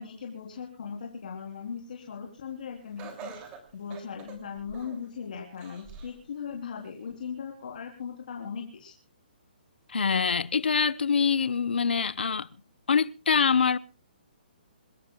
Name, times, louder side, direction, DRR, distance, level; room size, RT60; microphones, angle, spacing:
voice 1, 0.0-3.3 3.7-8.9, left 6 dB, 55° left, 3.5 m, -38 dB
Laughter, 3.0-5.1 5.6-6.2 6.7-6.8 7.8-7.9, right 6 dB, 20° right, 2.8 m, -45 dB
voice 2, 9.9-12.5 12.9-13.8, left 6 dB, 85° left, 0.9 m, -24 dB
27.0 x 16.5 x 2.3 m
hypercardioid pair, 170°, 5 cm